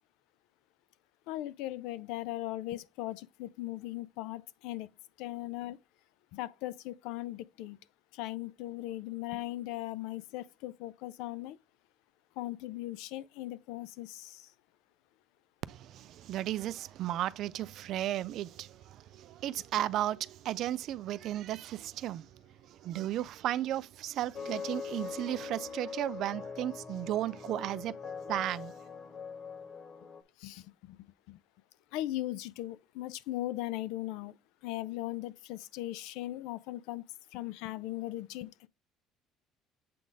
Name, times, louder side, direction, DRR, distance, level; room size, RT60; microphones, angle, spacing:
voice 1, 1.3-4.9 5.2-5.8 6.3-7.8 8.1-11.6 12.4-14.5 23.0-23.1 30.4-31.4 31.9-34.3 34.6-37.0 37.3-38.5, left 15 dB, 80° left, 0.4 m, -38 dB
voice 2, 15.7-22.3 22.8-27.9 28.3-28.7, right 13 dB, 45° right, 0.3 m, -34 dB
sound 1, 24.3-30.2, left 6 dB, 25° left, 0.6 m, -42 dB
7.5 x 3.9 x 3.4 m
cardioid pair, 175°, 0 cm